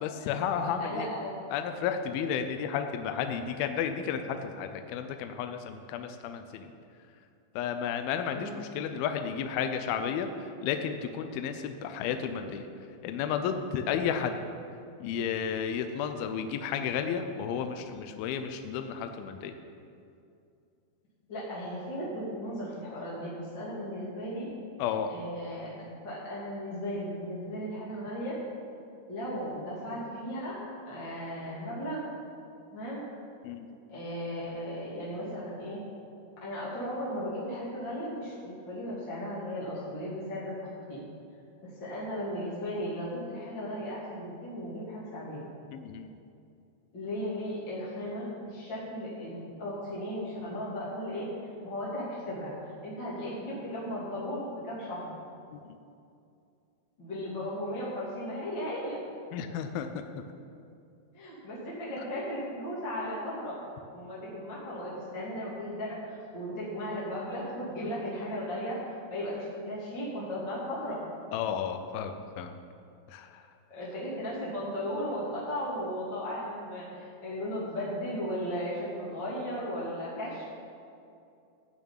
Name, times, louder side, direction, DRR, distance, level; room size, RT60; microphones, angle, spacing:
voice 1, 0.0-1.1 1.5-6.7 7.6-8.5 8.8-12.7 13.0-14.4 15.0-19.5 24.8-25.1 33.4-33.7 45.7-46.1 55.5-55.6 59.3-59.9 71.3-72.5 73.1-73.4, left 7 dB, 80° left, 7 dB, 2.2 m, -32 dB
voice 2, 0.6-1.3 8.3-8.5 21.3-24.5 25.1-25.7 26.0-28.4 29.1-30.6 30.8-32.0 32.7-33.0 33.9-35.8 36.4-41.0 41.6-45.5 46.9-51.3 51.6-52.5 52.8-55.1 57.0-59.0 61.1-63.6 63.9-68.8 69.1-71.0 73.7-80.4, equal, 30° left, -8 dB, 2.9 m, -36 dB
15.0 x 6.2 x 8.9 m, 2.5 s
omnidirectional pair, 5.1 m